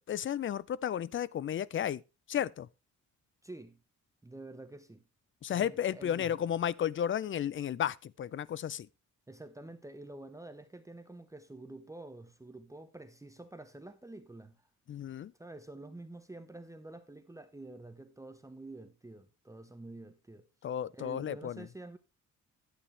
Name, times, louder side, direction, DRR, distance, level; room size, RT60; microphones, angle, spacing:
voice 1, 0.0-2.0 2.3-2.7 5.4-8.9 14.9-15.3 20.6-21.7, left 9 dB, 40° left, 0.5 m, -33 dB
voice 2, 3.4-3.8 4.2-5.0 5.5-6.4 9.3-14.6 15.4-20.4 20.9-22.0, right 2 dB, 10° right, 0.8 m, -48 dB
11.5 x 8.8 x 3.3 m
cardioid pair, 105°, 31 cm